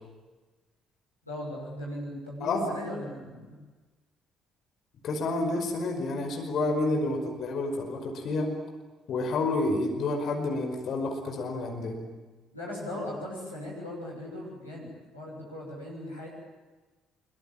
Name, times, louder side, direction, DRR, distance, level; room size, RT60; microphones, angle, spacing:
voice 1, 1.2-3.6 12.5-16.3, left 1 dB, 90° left, -7 dB, 6.9 m, -38 dB
voice 2, 5.0-8.5 9.1-12.0, left 2 dB, 50° left, 3 dB, 5.2 m, -29 dB
25.0 x 23.5 x 9.1 m, 1.2 s
figure-of-eight pair, 45°, 0 cm